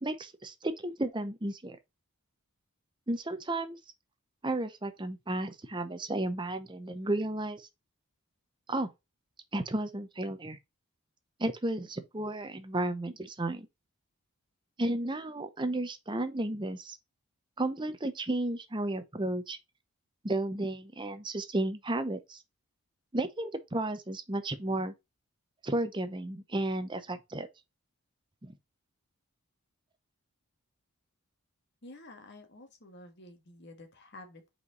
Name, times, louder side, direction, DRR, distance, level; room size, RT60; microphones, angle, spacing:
voice 1, 0.0-1.8 3.1-3.8 4.4-7.7 8.7-8.9 9.5-10.6 11.4-13.7 14.8-17.0 17.6-19.6 20.2-22.4 23.1-24.9 25.6-27.5 28.4-28.5, right 1 dB, 20° right, 0.8 m, -33 dB
voice 2, 31.8-34.5, left 2 dB, 50° left, 1.8 m, -50 dB
5.6 x 4.8 x 3.9 m
head